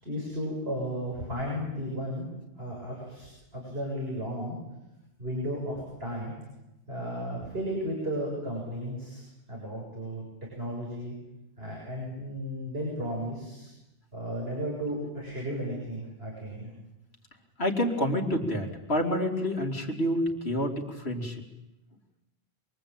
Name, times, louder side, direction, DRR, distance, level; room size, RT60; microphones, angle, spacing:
voice 1, 0.0-2.3 2.6-4.6 5.2-6.3 6.9-10.3 10.6-11.1 11.6-13.7 14.1-16.7, equal, 70° right, -2 dB, 7.2 m, -34 dB
voice 2, 17.6-21.4, equal, 85° left, 1 dB, 3.8 m, -28 dB
28.0 x 22.5 x 9.0 m, 0.95 s
omnidirectional pair, 1.0 m